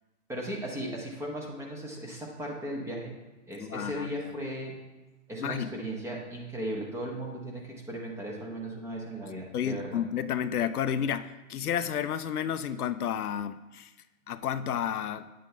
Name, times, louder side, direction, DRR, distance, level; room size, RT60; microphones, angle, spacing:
voice 1, 0.3-3.2 3.5-4.8 5.3-10.0, right 1 dB, 5° right, -1 dB, 0.7 m, -37 dB
voice 2, 3.6-4.1 5.4-5.7 9.5-13.9 14.3-15.3, left 9 dB, 80° left, 12 dB, 0.6 m, -31 dB
9.0 x 7.5 x 3.3 m, 1.1 s
hypercardioid pair, 130°, 44 cm